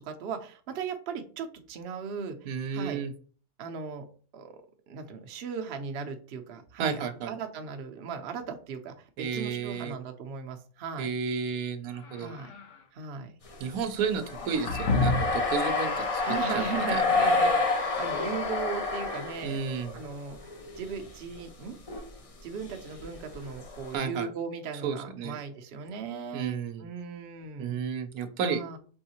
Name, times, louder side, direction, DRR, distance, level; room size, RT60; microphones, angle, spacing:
voice 1, 0.0-2.4 2.7-3.0 3.6-4.1 4.3-4.6 4.9-11.1 12.2-12.5 12.9-13.3 16.3-19.6 19.9-20.4 20.7-21.8 22.4-27.8 28.4-28.8, right 6 dB, 55° right, 5 dB, 0.7 m, -37 dB
voice 2, 2.5-3.1 6.8-7.3 9.2-10.0 11.0-12.3 13.6-16.2 16.5-17.0 19.4-19.9 23.9-24.3 24.8-25.4 26.3-26.9 27.6-28.6, right 6 dB, 85° right, 9 dB, 1.1 m, -32 dB
sound 1, 11.9-12.8 14.3-15.5, left 3 dB, 65° left, 1.0 m, -30 dB
sound 2, 13.5-20.1 20.4-21.1 21.4-21.5 21.9-22.1 22.7-24.0, left 3 dB, 45° left, 0.4 m, -29 dB
4.6 x 3.5 x 2.8 m, 0.42 s
omnidirectional pair, 1.5 m